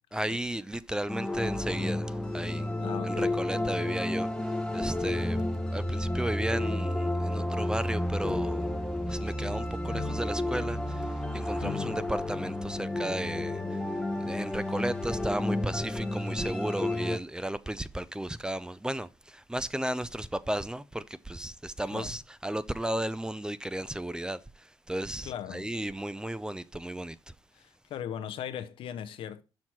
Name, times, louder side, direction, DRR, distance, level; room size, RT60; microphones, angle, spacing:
voice 1, 0.1-2.7 3.0-5.4 5.7-8.7 9.1-13.8 14.2-27.3, right 1 dB, 10° right, 0.5 m, -34 dB
sound 1, 1.1-17.2, left 1 dB, 10° left, 0.9 m, -31 dB
voice 2, 2.8-4.0 5.3-5.5 11.6-12.0 21.9-22.2 25.2-25.7 27.5-29.4, left 9 dB, 80° left, 0.7 m, -39 dB
6.3 x 5.8 x 4.5 m
cardioid pair, 85°, 9 cm